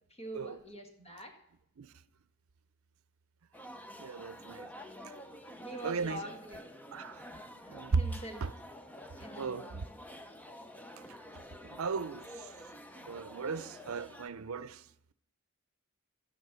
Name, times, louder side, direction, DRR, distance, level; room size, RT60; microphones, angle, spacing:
voice 1, 0.1-1.3 5.6-6.6 6.9-7.0 7.6-8.4 9.2-9.9, right 1 dB, 30° left, 1.9 m, -45 dB
sound 1, 3.5-14.3, equal, 5° left, 0.6 m, -49 dB
voice 2, 4.0-4.7 5.0-5.1 5.8-6.2 6.9-7.2 7.7-8.0 8.4-8.5 9.4-9.6 11.6-12.5 13.0-14.8, right 4 dB, 90° right, 0.5 m, -36 dB
12.5 x 9.4 x 6.1 m
head